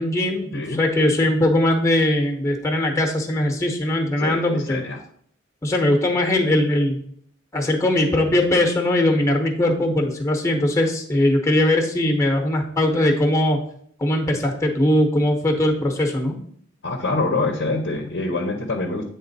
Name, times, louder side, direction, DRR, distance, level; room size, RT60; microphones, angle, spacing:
voice 1, 0.0-4.8 5.6-7.0 7.5-13.6 14.0-16.4, left 1 dB, 15° left, 4 dB, 1.0 m, -20 dB
voice 2, 4.2-5.0 16.8-19.0, left 2 dB, 60° left, 4 dB, 0.8 m, -25 dB
8.1 x 3.7 x 4.0 m, 0.63 s
head